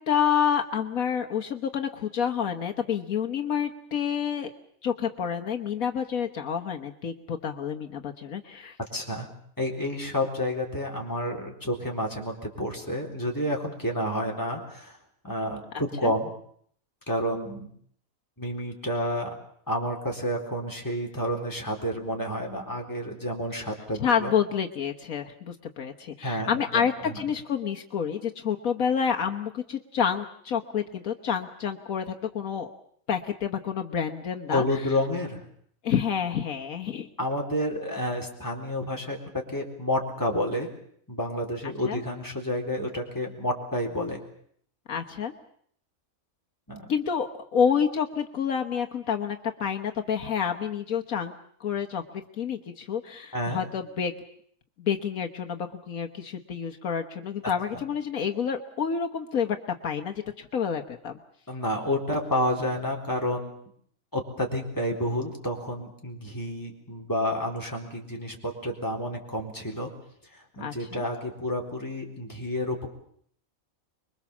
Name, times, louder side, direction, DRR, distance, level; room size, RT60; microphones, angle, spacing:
voice 1, 0.0-4.5 4.8-8.8 15.7-16.1 24.0-32.7 33.1-34.6 35.8-37.1 41.6-42.0 44.9-45.3 46.9-51.3 51.6-52.0 52.4-54.1 54.8-59.6 59.8-61.2 70.6-71.0, left 7 dB, 75° left, 3 dB, 1.6 m, -28 dB
voice 2, 8.9-9.3 9.6-15.0 15.2-16.3 17.1-17.7 18.4-19.3 19.7-24.3 26.2-27.2 34.5-35.4 37.2-39.2 39.5-40.7 41.1-44.2 46.7-46.9 53.3-53.6 57.7-57.8 61.5-63.5 64.1-69.9 70.3-72.9, left 1 dB, 15° left, 0 dB, 4.0 m, -30 dB
25.0 x 22.5 x 7.2 m, 0.64 s
omnidirectional pair, 1.5 m